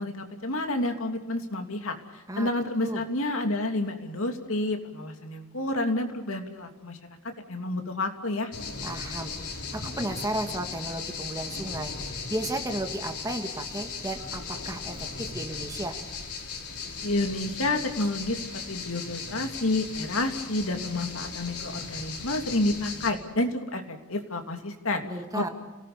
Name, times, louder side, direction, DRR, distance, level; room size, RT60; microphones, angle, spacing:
voice 1, 0.0-7.0 7.5-8.5 17.0-25.0 25.3-25.5, left 2 dB, 65° left, 5 dB, 3.0 m, -29 dB
sound 1, 8.5-23.1, left 4 dB, 85° left, 5.1 m, -37 dB
voice 2, 8.8-9.3 9.7-16.0 25.0-25.5, right 1 dB, 15° right, 5 dB, 2.2 m, -34 dB
30.0 x 18.5 x 6.9 m, 1.1 s
head